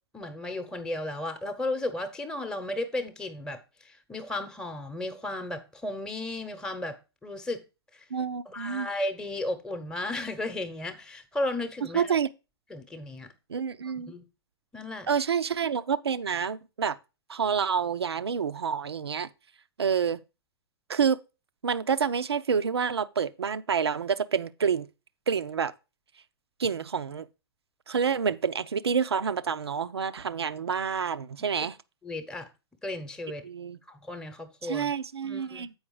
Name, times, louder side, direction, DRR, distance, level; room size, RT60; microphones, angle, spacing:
voice 1, 0.1-7.6 7.9-8.1 8.5-12.2 12.7-13.3 13.8-14.2 14.7-15.1 32.0-32.5 32.8-33.4 33.9-34.9 35.2-35.7, left 2 dB, 5° left, 1.0 m, -34 dB
voice 2, 8.1-8.9 11.9-12.3 13.5-14.1 15.1-17.0 17.3-19.3 19.8-20.2 20.9-21.2 21.6-24.9 25.3-25.7 26.6-27.3 27.9-31.8 33.4-33.8 34.6-35.7, right 6 dB, 75° right, 0.6 m, -28 dB
8.0 x 5.1 x 4.8 m
figure-of-eight pair, 110°, 13 cm